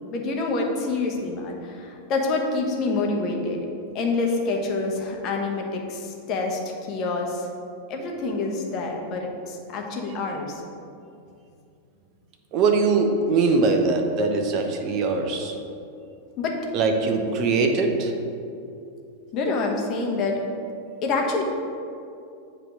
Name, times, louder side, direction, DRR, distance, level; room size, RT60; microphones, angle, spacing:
voice 1, 0.1-3.7 3.9-7.5 7.9-10.5 16.4-16.6 19.3-20.4 21.0-21.4, left 3 dB, 35° left, 1 dB, 1.1 m, -27 dB
voice 2, 12.5-15.5 16.7-18.1, right 4 dB, 40° right, 3 dB, 0.9 m, -22 dB
7.6 x 3.4 x 6.1 m, 2.6 s
figure-of-eight pair, 90°, 0 cm